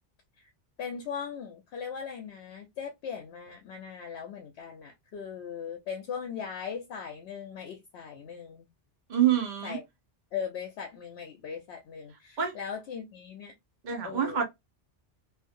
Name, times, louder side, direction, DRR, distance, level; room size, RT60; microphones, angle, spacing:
voice 1, 0.8-8.7 9.6-9.8 10.3-13.5 14.0-14.4, left 7 dB, 70° left, 0.8 m, -39 dB
voice 2, 9.1-9.8 12.4-12.5 13.8-14.4, right 10 dB, 45° right, 0.9 m, -26 dB
2.6 x 2.5 x 2.4 m
omnidirectional pair, 1.2 m